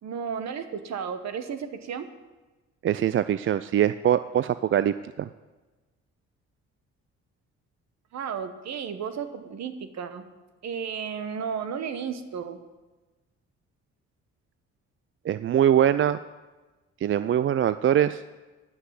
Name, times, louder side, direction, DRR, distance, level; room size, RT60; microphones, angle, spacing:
voice 1, 0.0-2.1 8.1-10.2 10.6-12.6, right 7 dB, 65° right, 9 dB, 1.2 m, -33 dB
voice 2, 2.8-5.3 15.3-16.2 17.0-18.2, right 10 dB, 45° right, 14 dB, 0.4 m, -23 dB
9.8 x 8.0 x 8.3 m, 1.2 s
supercardioid pair, 60°, 30 cm